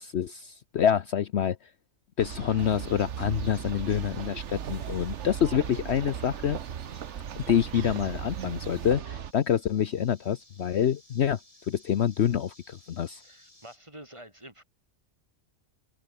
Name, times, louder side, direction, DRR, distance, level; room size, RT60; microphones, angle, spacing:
voice 1, 0.0-1.6 2.2-6.6 7.3-11.4 11.7-13.2, left 9 dB, 60° left, 1.0 m, -27 dB
sound 1, 2.2-9.3, right 9 dB, 65° right, 1.2 m, -37 dB
sound 2, 2.6-8.9, right 2 dB, 85° right, 5.9 m, -54 dB
sound 3, 6.7-13.8, left 1 dB, 25° left, 5.5 m, -59 dB
voice 2, 13.2-14.6, right 1 dB, 20° right, 4.7 m, -48 dB
omnidirectional pair, 1.4 m